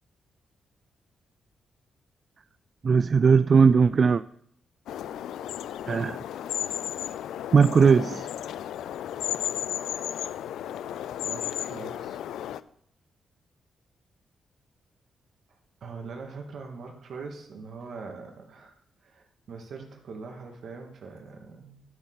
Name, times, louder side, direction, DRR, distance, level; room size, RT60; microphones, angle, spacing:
voice 1, 2.8-4.2 5.9-6.2 7.5-8.3, right 5 dB, 50° right, 14 dB, 0.3 m, -19 dB
sound 1, 4.9-12.6, left 11 dB, 90° left, 0.4 m, -34 dB
voice 2, 11.2-12.2 15.8-18.7 19.0-21.8, right 4 dB, 70° right, 2 dB, 2.3 m, -42 dB
13.0 x 8.1 x 4.1 m, 0.71 s
cardioid pair, 80°, 0 cm